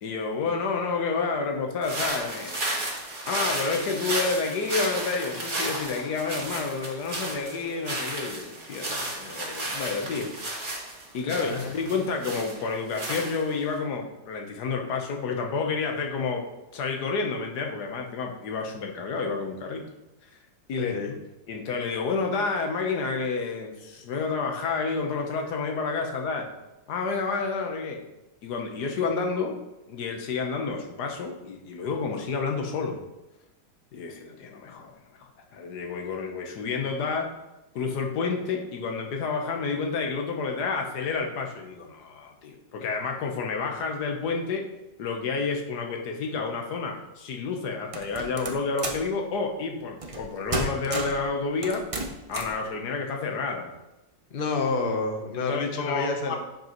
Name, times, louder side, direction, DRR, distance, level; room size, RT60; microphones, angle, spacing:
voice 1, 0.0-2.6 3.3-10.3 11.1-16.4 16.7-19.8 20.7-20.9 21.5-26.5 26.9-28.0 28.4-29.6 29.9-33.0 33.9-34.9 35.5-37.3 37.7-44.7 45.0-51.9 52.3-53.7 55.3-56.4, left 4 dB, 65° left, 2 dB, 1.5 m, -30 dB
sound 1, 1.8-13.7, right 1 dB, 30° right, 1.6 m, -33 dB
voice 2, 11.3-11.7 20.8-21.1 54.3-56.3, left 3 dB, 40° left, 3 dB, 0.9 m, -29 dB
sound 2, 47.9-49.1 50.0-50.2 50.5-51.2 51.6-52.6, right 2 dB, 55° right, 0.3 m, -32 dB
10.5 x 5.3 x 3.0 m, 0.98 s
omnidirectional pair, 1.9 m